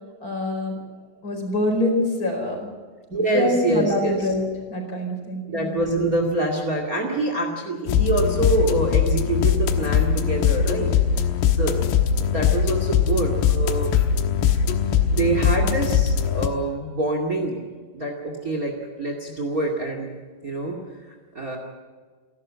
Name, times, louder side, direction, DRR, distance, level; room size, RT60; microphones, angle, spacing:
voice 1, 0.2-0.8 1.2-2.7 3.3-4.4 4.7-5.7, left 1 dB, 20° left, 2 dB, 4.6 m, -25 dB
voice 2, 3.1-4.3 5.5-10.9 11.5-11.8 12.2-13.9 15.1-17.6 17.9-20.1 20.4-20.8 21.3-21.6, right 2 dB, 50° right, 3 dB, 1.0 m, -25 dB
sound 1, 7.9-16.5, left 8 dB, 80° left, 3.8 m, -21 dB
29.5 x 12.5 x 7.5 m, 1.5 s
omnidirectional pair, 6.0 m